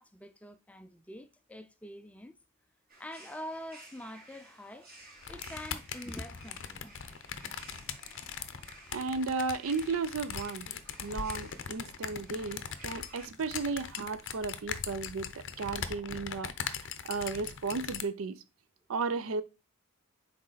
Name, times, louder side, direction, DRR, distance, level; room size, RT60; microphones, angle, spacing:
voice 1, 0.0-2.3 3.0-4.9 5.3-6.9, left 1 dB, 5° left, 0.3 m, -45 dB
sound 1, 2.9-13.3, right 2 dB, 45° right, 2.0 m, -55 dB
sound 2, 5.2-18.0, left 7 dB, 55° left, 0.6 m, -40 dB
voice 2, 8.9-10.7 11.0-16.5 17.0-18.4 18.9-19.4, right 4 dB, 65° right, 0.5 m, -34 dB
6.3 x 4.2 x 3.9 m
head